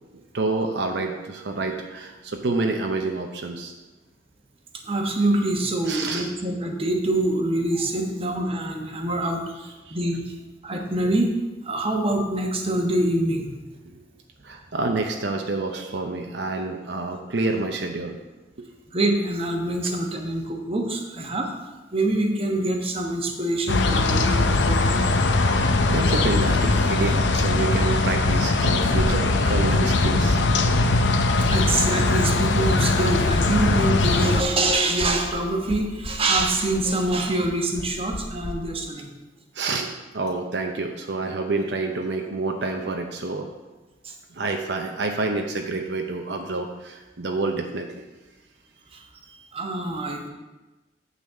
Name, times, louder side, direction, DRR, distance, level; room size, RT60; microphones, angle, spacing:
voice 1, 0.1-3.7 5.9-6.3 9.9-10.0 13.8-14.0 14.4-18.2 19.8-19.9 25.5-30.4 39.5-43.5 44.3-48.0 49.0-49.5, right 3 dB, 70° right, 3 dB, 0.7 m, -28 dB
voice 2, 4.8-10.4 10.6-11.3 11.6-13.5 18.9-21.5 21.9-25.0 31.4-39.1 44.0-44.1 48.9-49.0 49.5-50.3, right 1 dB, 30° right, 2 dB, 1.2 m, -25 dB
sound 1, 23.7-34.4, left 3 dB, 85° left, 0.7 m, -20 dB
sound 2, 33.3-38.5, left 1 dB, 55° left, 0.9 m, -34 dB
9.2 x 4.1 x 7.2 m, 1.1 s
head